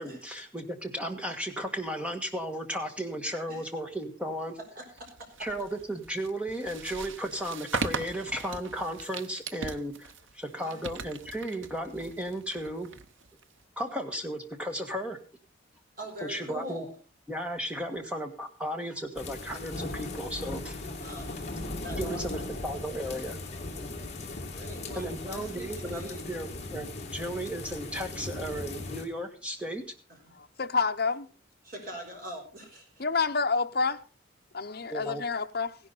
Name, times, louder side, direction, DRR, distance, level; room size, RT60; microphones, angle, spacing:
voice 1, 0.0-4.6 5.4-12.9 13.8-15.2 16.2-16.8 17.3-20.8 22.0-23.4 23.8-23.9 24.9-29.9 34.9-35.2, equal, 5° right, 1.6 m, -35 dB
voice 2, 4.7-5.5 10.6-10.8 16.0-16.9 21.0-21.3 21.8-22.5 24.5-26.2 29.4-29.5 30.1-30.3 31.6-33.0, equal, 45° right, 4.5 m, -43 dB
sound 1, 5.0-13.6, right 4 dB, 80° right, 0.9 m, -39 dB
sound 2, 19.2-29.0, left 2 dB, 35° left, 2.5 m, -38 dB
voice 3, 30.3-31.3 33.0-34.0 34.5-35.8, left 4 dB, 55° left, 0.9 m, -28 dB
16.0 x 11.0 x 4.1 m
head